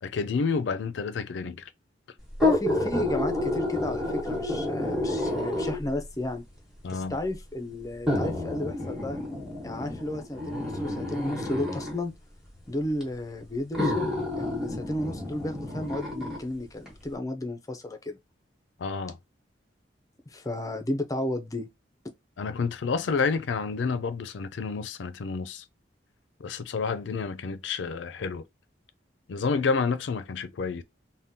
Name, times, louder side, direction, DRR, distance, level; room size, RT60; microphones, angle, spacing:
voice 1, 0.0-1.7 6.8-7.2 18.8-19.2 22.4-25.7 26.4-28.4 29.3-30.8, left 4 dB, 80° left, 0.4 m, -29 dB
sound 1, 2.3-6.0 6.9-7.0 8.1-12.0 13.0-13.1 13.7-16.4 16.9-17.0, left 1 dB, ahead, 1.1 m, -29 dB
voice 2, 2.4-6.4 6.9-9.2 9.6-12.1 12.7-14.1 14.4-18.2 20.3-21.7, left 1 dB, 20° left, 0.4 m, -33 dB
3.6 x 2.2 x 2.7 m
head